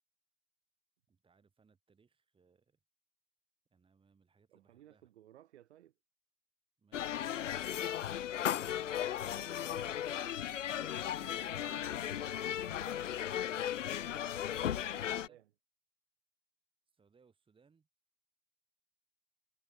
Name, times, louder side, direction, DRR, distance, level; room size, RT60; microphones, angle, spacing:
voice 1, 1.1-2.8 3.7-5.1 6.8-9.0 11.2-11.5 13.9-14.3 14.9-15.4 16.9-17.9, right 5 dB, 15° right, 5.2 m, -68 dB
voice 2, 4.5-5.9 9.3-10.2 10.8-13.1 14.5-15.5, right 12 dB, 65° right, 3.6 m, -60 dB
sound 1, 6.9-15.3, left 10 dB, 85° left, 0.6 m, -36 dB
figure-of-eight pair, 100°, 36 cm